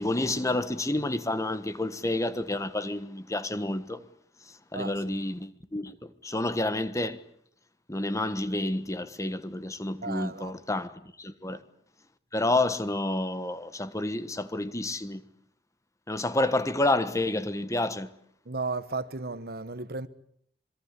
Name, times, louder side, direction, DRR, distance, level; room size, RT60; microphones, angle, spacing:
voice 1, 0.0-4.0 4.4-7.2 7.9-11.6 12.3-15.3 16.1-18.1, left 2 dB, 20° left, 1.4 m, -29 dB
voice 2, 10.0-10.5 11.5-11.6 18.5-20.1, right 3 dB, 60° right, 1.4 m, -34 dB
26.5 x 22.0 x 8.3 m
head